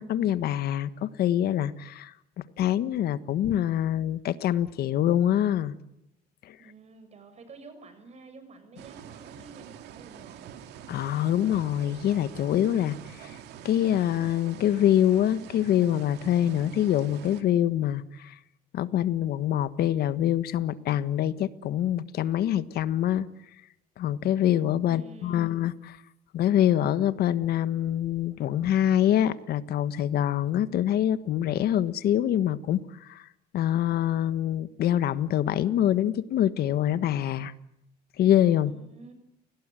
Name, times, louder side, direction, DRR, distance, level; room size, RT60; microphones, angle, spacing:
voice 1, 0.0-2.1 2.6-5.7 6.5-6.6 10.9-13.3 13.6-18.3 18.7-23.2 24.0-25.7 26.3-33.2 33.5-37.5 38.2-38.7, left 11 dB, 70° left, 13 dB, 1.5 m, -25 dB
voice 2, 6.6-10.5 24.8-25.6 38.7-39.1, right 3 dB, 40° right, 9 dB, 6.5 m, -49 dB
sound 1, 8.8-17.4, right 9 dB, 80° right, 2.5 m, -45 dB
29.5 x 19.0 x 9.1 m, 0.85 s
cardioid pair, 110°, 17 cm